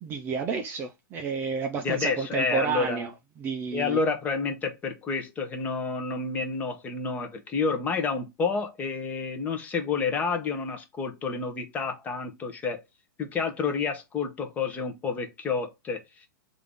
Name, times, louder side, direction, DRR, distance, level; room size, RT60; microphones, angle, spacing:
voice 1, 0.0-3.1 3.4-4.0, right 5 dB, 20° right, 0.4 m, -30 dB
voice 2, 1.8-3.1 3.7-12.8 13.2-16.0, left 4 dB, 15° left, 0.7 m, -29 dB
3.5 x 2.6 x 3.3 m
hypercardioid pair, 150°, 11 cm